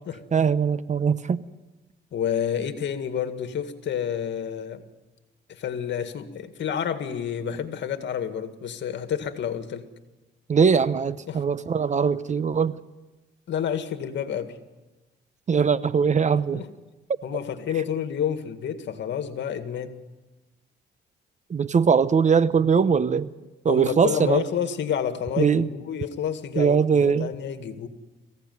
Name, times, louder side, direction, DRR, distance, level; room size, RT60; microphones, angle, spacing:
voice 1, 0.3-1.4 10.5-12.7 15.5-16.6 21.5-23.3 23.6-24.4 25.4-25.7 26.6-27.3, right 6 dB, 35° right, 15 dB, 0.9 m, -21 dB
voice 2, 2.1-4.8 5.6-9.9 11.3-11.4 13.5-14.6 16.3-16.7 17.2-19.9 23.7-27.9, left 8 dB, 65° left, 8 dB, 2.1 m, -29 dB
23.0 x 16.5 x 9.5 m, 1.1 s
cardioid pair, 90°, 20 cm